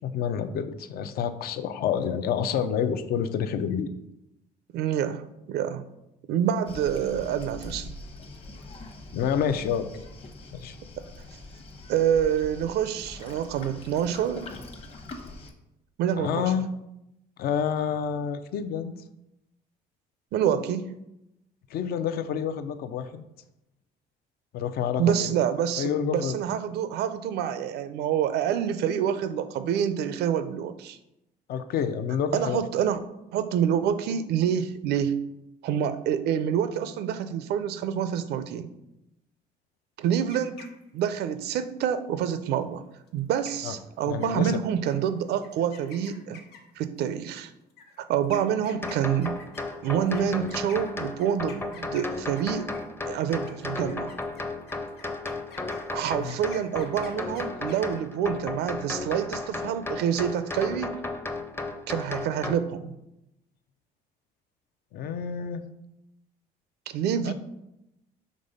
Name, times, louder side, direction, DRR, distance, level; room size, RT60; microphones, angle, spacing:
voice 1, 0.0-4.0 9.1-9.9 10.5-10.8 16.2-16.9 17.4-19.0 21.7-23.2 24.5-25.3 25.8-26.4 31.5-32.6 43.6-43.8 44.1-44.6 56.2-56.4 64.9-65.7 67.2-67.3, left 8 dB, 65° left, 9 dB, 0.5 m, -28 dB
voice 2, 4.7-5.8 6.3-7.9 11.0-11.1 11.9-14.5 16.0-16.5 20.3-21.0 25.0-31.0 32.3-33.0 33.3-35.2 35.6-38.7 40.0-40.6 40.9-42.8 43.1-46.4 46.8-47.5 48.0-49.4 49.8-52.7 53.1-54.1 55.9-61.0 61.9-63.0 66.9-67.3, right 9 dB, 75° right, 11 dB, 0.5 m, -27 dB
Waves surf, 6.7-15.5, left 2 dB, 35° left, 1.0 m, -43 dB
sound 1, 40.1-41.1 43.1-43.2 43.4-43.8 44.2-44.5 44.9-45.0 45.4-46.8 47.7-52.9 53.3-57.8, left 5 dB, 80° left, 1.2 m, -48 dB
sound 2, 48.8-62.5, left 2 dB, 15° left, 0.6 m, -34 dB
5.3 x 3.5 x 5.4 m, 0.89 s
cardioid pair, 110°, 17 cm